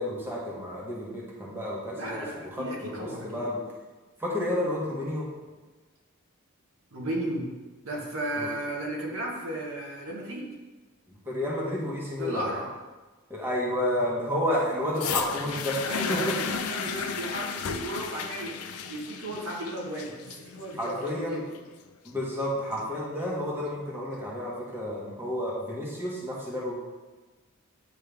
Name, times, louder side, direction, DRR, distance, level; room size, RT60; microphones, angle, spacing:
voice 1, 0.0-3.6 4.2-5.3 8.3-8.5 11.1-12.5 13.3-16.4 20.8-21.4 22.0-26.7, left 1 dB, 10° right, -6 dB, 1.3 m, -31 dB
voice 2, 2.0-3.4 6.9-7.5 7.8-10.5 12.2-12.7 14.5-14.9 15.8-21.6, right 1 dB, 65° right, -2 dB, 1.3 m, -35 dB
sound 1, 15.0-23.0 23.8-23.9, left 7 dB, 90° left, 0.5 m, -34 dB
9.3 x 3.3 x 3.4 m, 1.3 s
head